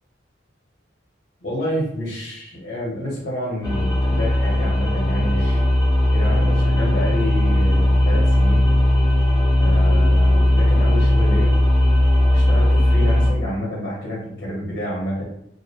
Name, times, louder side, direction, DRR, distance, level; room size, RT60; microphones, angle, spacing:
voice 1, 1.4-5.6 6.1-8.7 9.6-11.6 12.3-15.2, left 1 dB, 50° left, -5 dB, 0.7 m, -28 dB
sound 1, 3.6-13.3, left 1 dB, 15° left, 0.5 m, -17 dB
2.3 x 2.1 x 2.7 m, 0.76 s
head